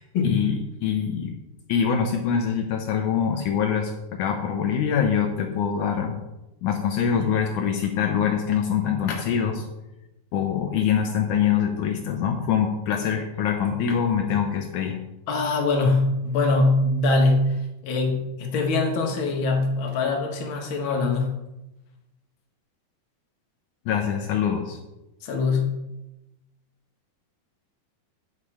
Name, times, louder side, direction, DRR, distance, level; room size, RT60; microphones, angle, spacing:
voice 1, 0.0-1.3 1.7-6.2 6.6-9.7 10.3-15.0 23.8-24.8, left 7 dB, 90° left, 3 dB, 1.7 m, -24 dB
voice 2, 15.3-17.5 17.8-21.3 25.2-25.7, left 3 dB, 50° left, 0 dB, 1.5 m, -22 dB
9.1 x 7.2 x 4.9 m, 0.96 s
omnidirectional pair, 4.6 m